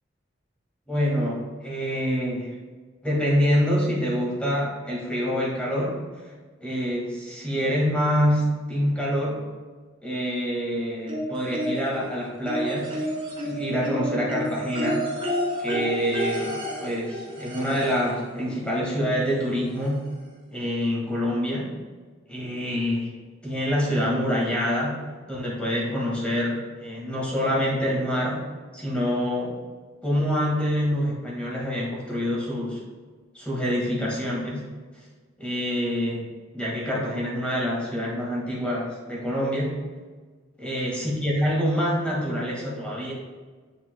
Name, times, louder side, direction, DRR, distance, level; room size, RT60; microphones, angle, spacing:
voice 1, 0.9-2.6 3.0-6.0 6.6-9.4 10.0-13.0 13.4-15.0 15.6-20.1 20.5-21.7 22.3-23.1 23.4-25.0 25.3-28.4 28.7-29.6 30.0-32.8 33.3-34.7 35.4-36.3 36.5-39.8 40.6-43.1, equal, 5° left, -5 dB, 1.8 m, -26 dB
sound 1, 11.1-12.0 12.5-18.1 19.4-19.5 19.8-19.9, equal, 30° right, 2.0 m, -30 dB
7.5 x 7.2 x 2.2 m, 1.4 s
head